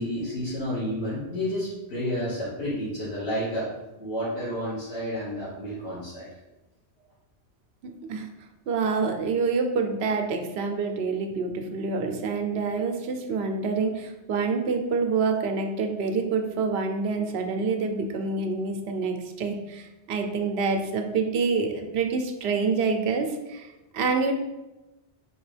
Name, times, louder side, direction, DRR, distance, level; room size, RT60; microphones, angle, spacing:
voice 1, 0.0-3.7 4.0-6.3, equal, 70° left, -11 dB, 1.5 m, -30 dB
voice 2, 7.8-8.3 8.7-24.3, right 4 dB, 75° right, 4 dB, 0.8 m, -27 dB
4.5 x 2.9 x 3.2 m, 1.0 s
omnidirectional pair, 1.1 m